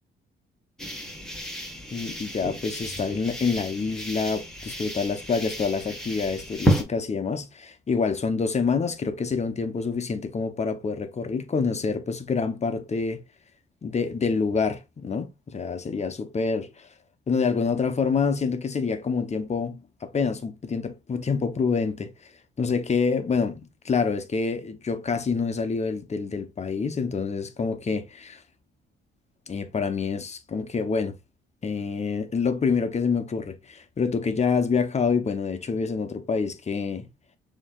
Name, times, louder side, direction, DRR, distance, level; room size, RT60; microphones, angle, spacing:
sound 1, 0.8-6.8, equal, 5° left, 1.6 m, -31 dB
voice 1, 1.9-13.2 13.8-16.9 17.3-22.3 22.6-28.4 29.5-31.1 31.6-37.0, left 5 dB, 35° left, 0.9 m, -27 dB
6.9 x 3.0 x 2.4 m
cardioid pair, 90°, 20 cm